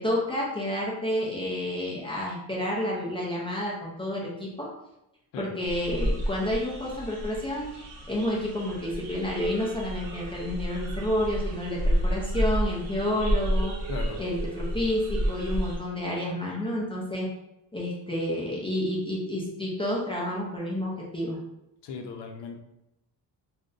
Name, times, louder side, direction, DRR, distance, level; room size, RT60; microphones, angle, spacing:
voice 1, 0.0-4.7 5.4-13.7 14.2-17.3 17.7-21.4, left 1 dB, 15° left, -5 dB, 0.3 m, -30 dB
sound 1, 5.6-15.8, equal, 55° right, 0.7 m, -30 dB
voice 2, 13.9-14.2 21.8-22.6, left 5 dB, 85° left, 4 dB, 0.6 m, -37 dB
2.5 x 2.1 x 3.7 m, 0.87 s
cardioid pair, 175°, 40 cm